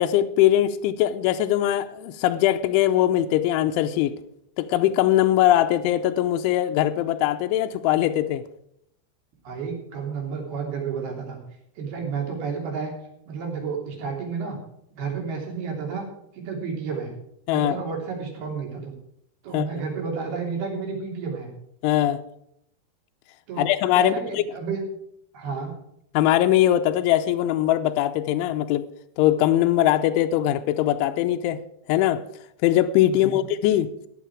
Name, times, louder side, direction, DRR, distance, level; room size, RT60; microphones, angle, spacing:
voice 1, 0.0-4.2 4.6-8.4 17.5-17.8 19.5-19.7 21.8-22.2 23.6-24.4 26.1-28.8 29.2-31.6 31.9-32.2 32.6-33.9, left 13 dB, 80° left, 7 dB, 2.9 m, -21 dB
voice 2, 9.4-11.4 11.8-12.9 13.3-14.6 14.9-16.0 16.3-17.1 17.5-18.9 19.4-21.5 23.5-23.7 23.9-24.8 25.3-25.7 33.1-33.4, right 5 dB, 55° right, 0 dB, 4.7 m, -31 dB
14.0 x 10.0 x 4.8 m, 0.76 s
omnidirectional pair, 5.8 m